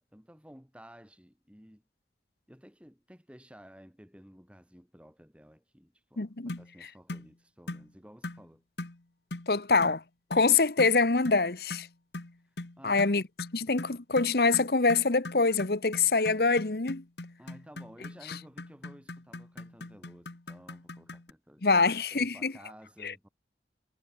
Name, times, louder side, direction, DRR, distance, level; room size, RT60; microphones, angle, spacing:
voice 1, 0.0-1.8 2.5-8.6 12.8-13.0 17.4-21.8 22.1-23.3, equal, 5° right, 5.3 m, -54 dB
voice 2, 6.2-6.6 9.5-10.0 10.3-11.9 12.8-13.2 13.5-17.0 21.6-22.5 23.0-23.1, left 4 dB, 60° left, 1.1 m, -25 dB
sound 1, 6.5-6.7 7.1-7.3 7.7-7.9 8.2-8.4 8.8-9.0 9.3-9.5 9.8-10.0 10.3-10.5 10.8-11.0 11.2-11.4 11.7-21.3, left 2 dB, 75° left, 1.5 m, -41 dB
head